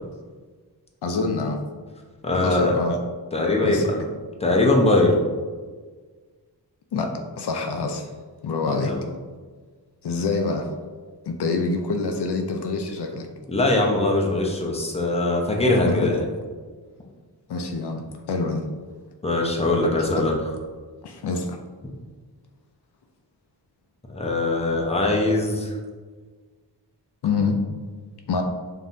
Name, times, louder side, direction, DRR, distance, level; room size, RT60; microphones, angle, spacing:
voice 1, 1.0-1.6 2.3-3.0 3.6-4.1 6.9-8.1 8.4-8.9 10.0-10.7 11.3-13.3 15.9-16.1 17.5-18.7 20.0-20.3 21.0-21.6 27.2-27.6 28.3-28.4, left 3 dB, 70° left, 4 dB, 0.5 m, -26 dB
voice 2, 2.2-2.7 3.3-4.0 4.4-5.1 8.6-9.0 13.5-16.3 19.2-20.4 24.1-25.8, left 2 dB, 15° left, -1 dB, 0.7 m, -21 dB
5.3 x 2.8 x 2.5 m, 1.5 s
wide cardioid pair, 90°, 41 cm